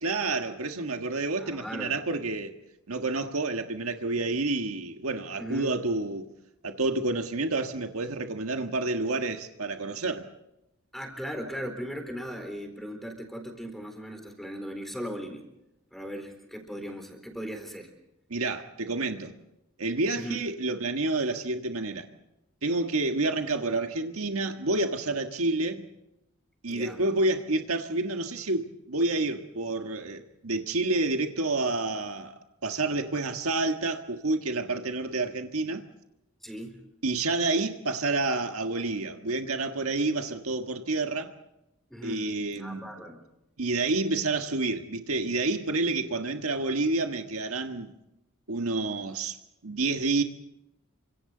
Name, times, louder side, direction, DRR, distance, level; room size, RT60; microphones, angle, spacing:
voice 1, 0.0-2.5 2.9-6.3 6.6-10.3 18.3-19.3 19.8-22.1 22.6-25.8 26.6-35.8 37.0-41.3 42.0-42.8 43.6-47.9 48.5-49.4 49.6-50.2, right 2 dB, 80° right, 1.6 m, -29 dB
voice 2, 1.4-2.1 5.4-5.7 10.9-15.4 15.9-17.9 20.1-20.4 26.7-27.0 36.4-36.8 41.9-42.3 42.5-43.2, equal, ahead, 4.1 m, -38 dB
28.5 x 25.5 x 4.0 m
head